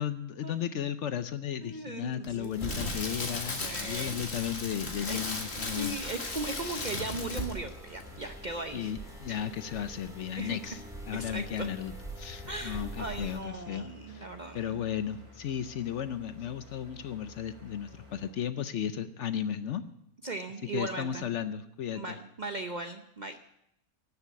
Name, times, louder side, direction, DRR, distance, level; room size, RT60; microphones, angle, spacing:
voice 1, 0.0-6.0 6.6-6.8 8.7-14.3 14.5-19.8 20.7-22.2, left 9 dB, 65° left, 12 dB, 0.8 m, -35 dB
voice 2, 1.6-2.8 3.6-4.2 5.0-5.2 5.6-8.9 10.4-10.7 11.1-11.7 12.5-14.8 20.2-21.3 21.9-23.4, right 2 dB, 45° right, 6 dB, 0.6 m, -38 dB
Crackle, 2.2-7.7 8.0-8.2, left 2 dB, 45° left, 2.1 m, -36 dB
sound 1, 2.5-13.4, right 1 dB, ahead, 2.8 m, -46 dB
sound 2, 2.9-18.3, equal, 80° right, 4.1 m, -53 dB
13.0 x 7.1 x 9.3 m, 0.79 s
omnidirectional pair, 1.5 m